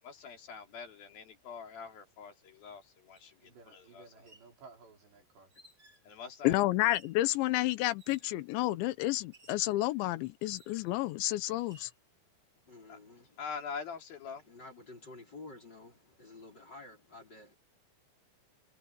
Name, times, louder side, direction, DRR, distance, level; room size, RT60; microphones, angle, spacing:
voice 1, 0.0-3.4 3.7-4.0 6.0-6.6 12.9-13.0 13.4-14.4, left 6 dB, 55° left, 4.7 m, -44 dB
sound 1, 3.2-3.3 4.1-4.5 5.5-6.1 6.8-7.2 8.0-8.4 9.3-9.7 10.5-11.0 11.6-11.9, equal, 20° right, 3.3 m, -59 dB
voice 2, 3.4-5.5, right 4 dB, 70° right, 7.3 m, -56 dB
voice 3, 6.4-11.9, left 17 dB, 85° left, 3.4 m, -30 dB
voice 4, 12.7-13.4 14.3-17.6, left 2 dB, 25° left, 5.4 m, -51 dB
omnidirectional pair, 5.2 m